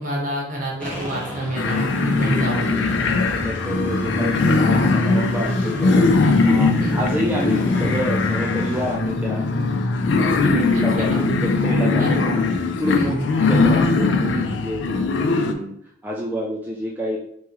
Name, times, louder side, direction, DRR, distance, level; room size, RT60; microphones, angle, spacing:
voice 1, 0.0-2.9 4.0-4.3 5.1-5.2 6.8-7.0 10.9-11.2 12.0-12.4 12.9-13.3, right 1 dB, 50° right, -2 dB, 1.2 m, -27 dB
sound 1, 0.8-9.0, left 1 dB, 5° left, 1.1 m, -29 dB
sound 2, 1.6-15.5, left 3 dB, 80° left, 0.4 m, -20 dB
voice 2, 2.2-2.9 3.4-6.1 6.4-9.4 10.1-12.2 12.8-14.8 15.3-15.7 16.0-17.2, equal, 10° right, -4 dB, 0.4 m, -28 dB
3.5 x 3.1 x 3.0 m, 0.71 s
head